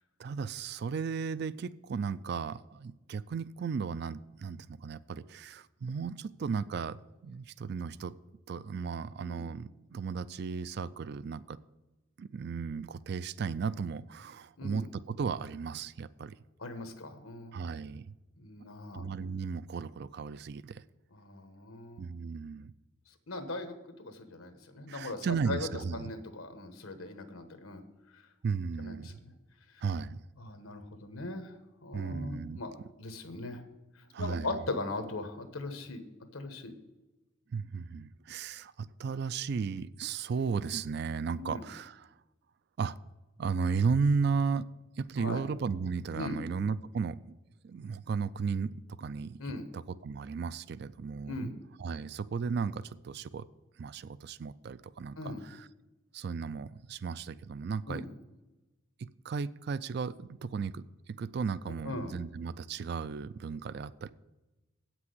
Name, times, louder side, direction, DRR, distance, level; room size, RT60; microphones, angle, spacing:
voice 1, 0.2-8.1 8.5-11.6 12.2-16.3 17.5-18.1 18.9-20.8 22.0-22.7 24.9-26.1 28.4-29.1 29.8-30.2 31.9-32.6 34.1-34.6 37.5-42.1 42.8-43.0 43.4-44.6 45.0-47.2 47.6-49.4 49.7-53.5 53.8-55.2 55.4-55.7 56.1-58.0 59.2-60.8 61.2-64.1, right 5 dB, 50° right, 17 dB, 0.3 m, -35 dB
voice 2, 14.6-14.9 16.6-17.6 18.4-19.0 21.1-22.0 23.3-27.8 28.1-28.2 28.8-29.3 30.4-33.6 34.2-36.0 36.3-36.7 41.4-41.6 45.2-45.4 46.2-46.4 49.4-49.7 51.3-51.5 55.2-55.4 57.9-58.1 61.8-62.1, left 2 dB, 85° left, 7 dB, 1.2 m, -39 dB
8.5 x 6.1 x 7.8 m, 1.1 s
head